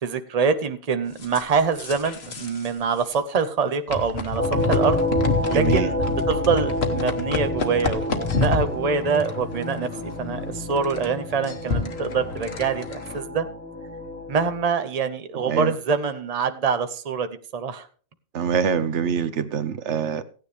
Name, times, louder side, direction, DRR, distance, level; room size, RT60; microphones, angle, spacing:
voice 1, 0.0-5.0 5.5-9.9 10.2-13.5 14.3-17.9, right 5 dB, 35° right, 0.9 m, -25 dB
sound 1, 1.2-2.7 3.0-3.1 3.9-13.2, left 4 dB, 60° left, 1.5 m, -29 dB
sound 2, 4.4-14.6, left 1 dB, 10° left, 4.1 m, -29 dB
voice 2, 5.5-5.9 15.3-15.7 18.3-20.2, right 7 dB, 80° right, 1.1 m, -24 dB
16.0 x 9.7 x 3.3 m
omnidirectional pair, 1.2 m